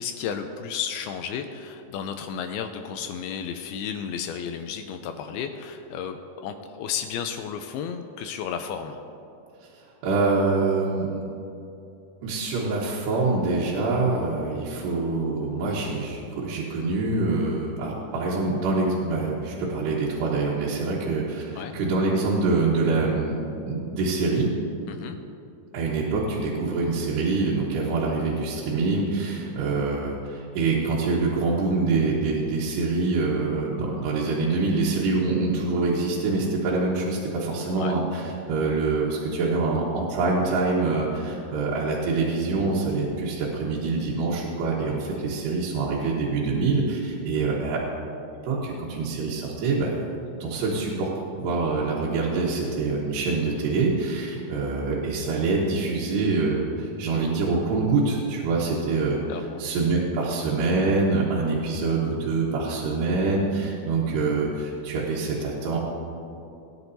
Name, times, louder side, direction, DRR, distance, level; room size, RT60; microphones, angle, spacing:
voice 1, 0.0-9.0 21.6-21.8 24.9-25.2 37.8-37.9 47.4-47.6 59.3-59.6, left 7 dB, 80° left, 6 dB, 2.3 m, -33 dB
voice 2, 9.7-11.2 12.2-24.5 25.7-47.8 48.4-50.0 50.4-51.1 51.4-59.2 59.6-65.8, right 3 dB, 80° right, -6 dB, 3.3 m, -25 dB
20.0 x 10.5 x 2.7 m, 2.7 s
omnidirectional pair, 4.9 m